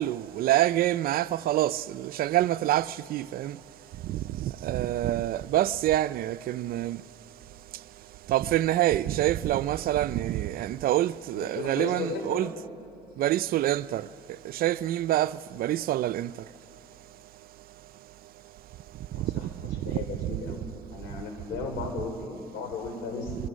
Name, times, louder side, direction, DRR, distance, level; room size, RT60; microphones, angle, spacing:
voice 1, 0.0-3.6 4.0-7.0 8.3-12.5 13.2-14.1 14.5-16.3 19.7-20.5, right 14 dB, 60° right, 0.5 m, -26 dB
voice 2, 11.3-12.5 19.1-20.7 20.9-23.4, left 4 dB, 90° left, 4.1 m, -35 dB
25.0 x 22.0 x 6.3 m
cardioid pair, 110°, 17 cm